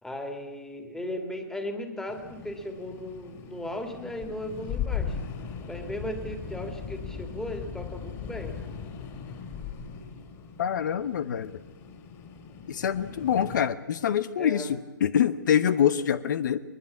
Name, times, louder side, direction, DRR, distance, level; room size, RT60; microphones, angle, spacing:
voice 1, 0.0-5.2 5.7-8.6 14.4-14.7, left 1 dB, 5° left, 6 dB, 2.5 m, -36 dB
sound 1, 2.1-13.6, left 7 dB, 30° left, 3.9 m, -38 dB
voice 2, 10.6-11.6 12.7-16.6, left 9 dB, 65° left, 14 dB, 1.0 m, -25 dB
21.0 x 21.0 x 8.5 m, 1.2 s
hypercardioid pair, 150°, 11 cm